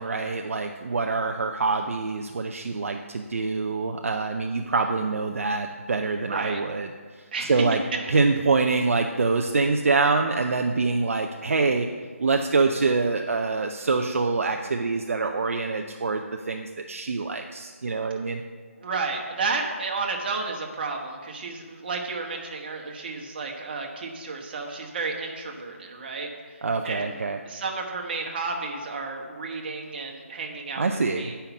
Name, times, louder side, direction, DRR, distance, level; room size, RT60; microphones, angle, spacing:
voice 1, 0.0-6.9 7.4-7.8 8.1-11.9 12.2-18.4 26.6-27.4 30.8-31.3, right 4 dB, 65° right, 4 dB, 0.6 m, -25 dB
voice 2, 6.3-6.6 7.3-7.7 7.9-8.1 18.8-31.3, right 4 dB, 40° right, 1 dB, 1.4 m, -32 dB
8.9 x 5.7 x 7.1 m, 1.5 s
figure-of-eight pair, 160°, 8 cm